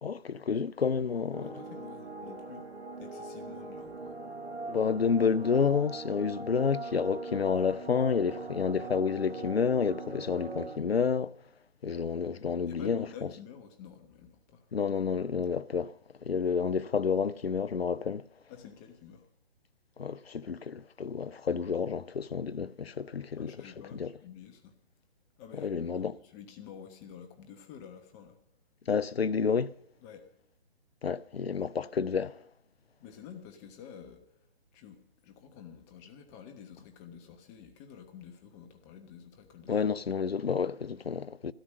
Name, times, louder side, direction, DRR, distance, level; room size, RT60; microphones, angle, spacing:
voice 1, 0.0-1.6 4.7-11.3 11.8-13.1 14.7-15.9 16.2-18.3 20.0-23.6 23.9-24.1 25.6-26.1 28.9-29.7 31.0-32.3 39.7-41.5, left 6 dB, 75° left, 0.6 m, -29 dB
sound 1, 1.3-10.8, right 3 dB, 80° right, 2.4 m, -41 dB
voice 2, 1.4-2.7 3.0-4.2 12.7-14.7 18.5-19.3 23.4-24.7 25.4-28.4 30.0-30.2 33.0-34.4 34.7-39.8, left 8 dB, 15° left, 1.2 m, -49 dB
13.0 x 13.0 x 6.5 m
figure-of-eight pair, 140°, 31 cm